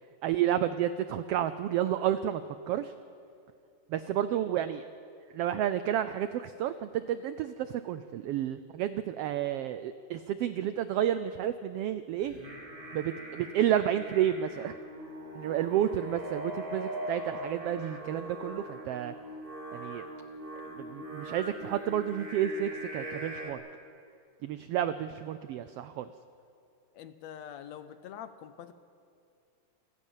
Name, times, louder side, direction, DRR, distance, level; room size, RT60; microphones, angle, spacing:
voice 1, 0.2-2.9 3.9-4.8 5.3-12.4 12.9-14.7 15.3-19.1 19.7-20.0 20.7-23.6 24.4-26.1, right 10 dB, 90° right, 12 dB, 1.3 m, -31 dB
Singing, 12.2-23.5, right 1 dB, 20° right, 2.2 m, -41 dB
voice 2, 26.9-28.7, left 9 dB, 75° left, 12 dB, 1.9 m, -45 dB
28.5 x 15.0 x 7.4 m, 2.5 s
omnidirectional pair, 3.4 m